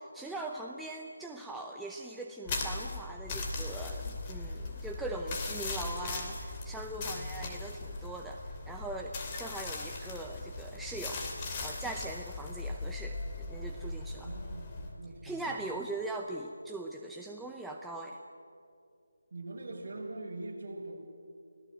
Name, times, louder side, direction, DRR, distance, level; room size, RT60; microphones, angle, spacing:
voice 1, 0.0-8.4 8.7-11.2 11.6-14.3 15.2-18.2, right 2 dB, ahead, 0 dB, 0.7 m, -41 dB
sound 1, 2.5-14.9, left 3 dB, 20° left, 2.7 m, -39 dB
voice 2, 6.9-7.3 14.0-15.5 19.3-20.9, right 2 dB, 45° right, -2 dB, 6.4 m, -43 dB
28.5 x 18.0 x 7.9 m, 2.4 s
figure-of-eight pair, 170°, 0 cm